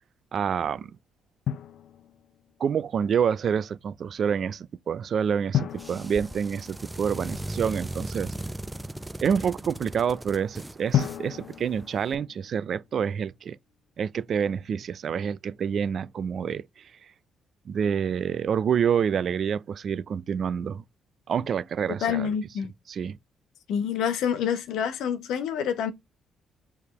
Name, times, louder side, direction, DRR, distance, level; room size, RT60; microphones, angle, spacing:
voice 1, 0.3-0.9 2.6-8.3 9.2-13.6 14.0-16.7 17.7-20.8 21.3-22.3 22.9-23.2, right 7 dB, 55° right, 0.4 m, -27 dB
Drum, 1.5-2.5 5.5-7.4 10.9-12.9, left 10 dB, 65° left, 0.4 m, -32 dB
sound 1, 5.7-12.1, right 1 dB, 10° right, 0.6 m, -38 dB
voice 2, 22.0-22.7 23.7-25.9, left 8 dB, 85° left, 0.8 m, -27 dB
4.7 x 3.4 x 3.1 m
cardioid pair, 90°, 0 cm